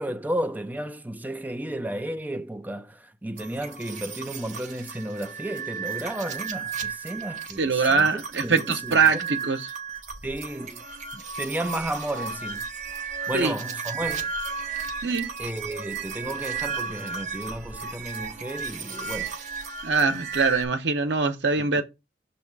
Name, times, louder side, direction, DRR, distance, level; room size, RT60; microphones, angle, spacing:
voice 1, 0.0-9.0 10.2-10.8 11.1-12.6 13.3-14.3 15.4-19.3 21.6-21.8, right 1 dB, 10° right, 0.4 m, -33 dB
sound 1, 3.4-20.7, right 5 dB, 45° right, 0.8 m, -34 dB
voice 2, 7.6-9.7 13.3-13.6 15.0-15.3 19.8-21.8, right 4 dB, 80° right, 0.9 m, -23 dB
6.4 x 3.2 x 4.6 m
head